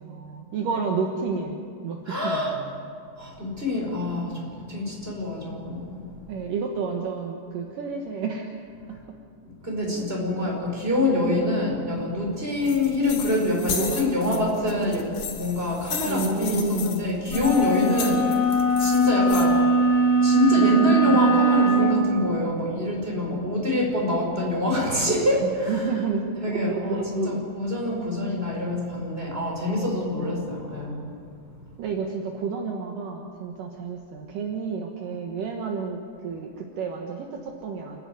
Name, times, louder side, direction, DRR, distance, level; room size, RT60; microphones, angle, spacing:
voice 1, 0.0-2.8 6.3-8.5 9.9-10.5 13.6-14.5 16.1-16.9 20.5-21.2 25.4-27.5 31.8-38.0, right 5 dB, 65° right, 1 dB, 2.8 m, -31 dB
voice 2, 2.1-2.5 3.2-4.4 4.7-6.0 9.6-18.3 18.8-19.6 20.2-25.9 26.4-31.0, left 2 dB, 15° right, -2 dB, 5.3 m, -25 dB
sound 1, 12.6-19.5, left 7 dB, 85° left, 3.7 m, -35 dB
sound 2, 17.3-21.9, right 2 dB, 40° left, 7.5 m, -20 dB
29.0 x 11.0 x 9.5 m, 2.3 s
omnidirectional pair, 4.3 m